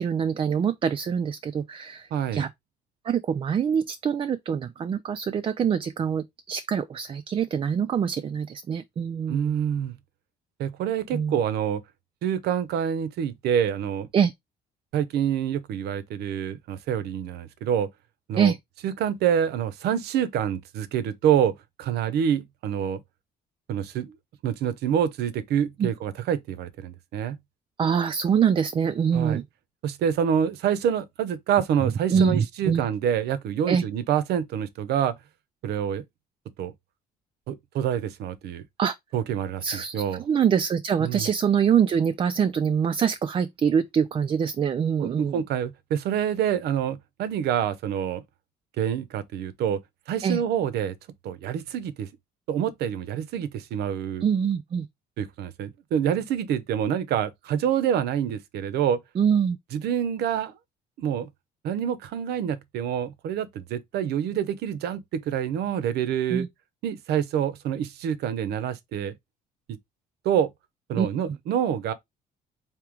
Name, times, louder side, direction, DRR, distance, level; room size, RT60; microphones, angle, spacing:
voice 1, 0.0-2.5 3.0-9.5 11.1-11.4 14.1-14.3 18.4-18.6 25.8-25.9 27.8-29.4 32.1-32.9 33.7-33.8 38.8-39.0 39.6-45.4 50.2-50.4 54.2-54.9 59.2-59.6 66.3-66.5 71.0-71.1, right 7 dB, 30° right, 0.4 m, -24 dB
voice 2, 2.1-2.5 9.3-9.9 10.6-11.8 12.2-14.1 14.9-17.9 18.3-18.5 18.8-23.0 23.7-24.2 24.4-27.4 29.1-29.4 29.8-35.2 35.6-36.0 36.6-36.7 37.5-38.6 39.1-39.6 39.9-40.2 41.0-41.3 45.0-48.2 48.8-49.8 50.1-50.9 51.2-52.1 52.5-54.2 55.2-59.0 59.7-60.5 61.0-61.3 61.6-66.5 66.8-69.1 69.7-69.8 70.2-70.5 70.9-71.9, right 9 dB, 75° right, 0.7 m, -27 dB
3.6 x 2.9 x 4.5 m
cardioid pair, 110°, 17 cm